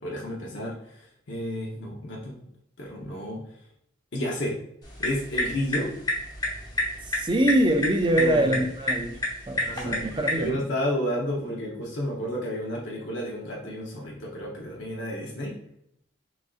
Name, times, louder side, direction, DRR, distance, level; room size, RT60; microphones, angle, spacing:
voice 1, 0.0-2.3 2.8-3.4 4.1-4.6 5.0-5.9 8.1-8.6 9.6-15.5, equal, 65° left, -3 dB, 0.8 m, -31 dB
sound 1, 4.8-10.5, left 1 dB, 20° left, 0.8 m, -30 dB
voice 2, 7.1-9.2 9.5-10.6, right 1 dB, 25° right, 5 dB, 0.4 m, -24 dB
6.0 x 2.6 x 2.4 m, 0.74 s
head